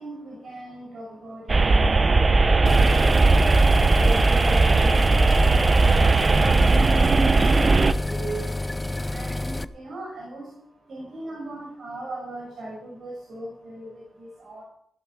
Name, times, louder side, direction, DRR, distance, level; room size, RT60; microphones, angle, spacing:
voice 1, 0.0-3.3 3.6-14.6, right 2 dB, 70° right, -3 dB, 6.2 m, -39 dB
sound 1, 1.5-7.9, right 3 dB, 45° right, 0.9 m, -18 dB
sound 2, 2.7-9.7, left 2 dB, 20° left, 0.7 m, -29 dB
15.0 x 12.0 x 4.9 m, 0.68 s
supercardioid pair, 45°, 0 cm